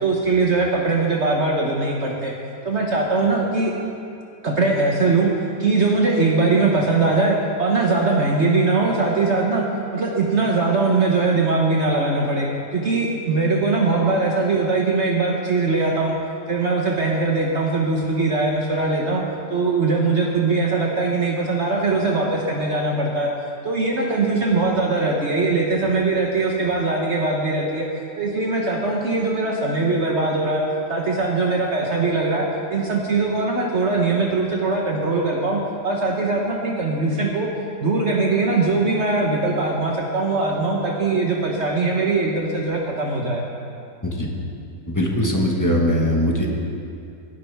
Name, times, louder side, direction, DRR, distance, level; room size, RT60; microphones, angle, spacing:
voice 1, 0.0-2.3 2.6-3.7 4.4-5.3 5.6-9.6 9.9-16.2 16.5-19.2 19.5-23.3 23.6-27.9 28.2-30.6 30.9-37.5 37.8-43.4, right 3 dB, 45° right, -1 dB, 1.2 m, -21 dB
voice 2, 44.9-46.6, equal, 10° left, -1 dB, 1.2 m, -21 dB
17.0 x 11.0 x 3.5 m, 2.6 s
omnidirectional pair, 1.8 m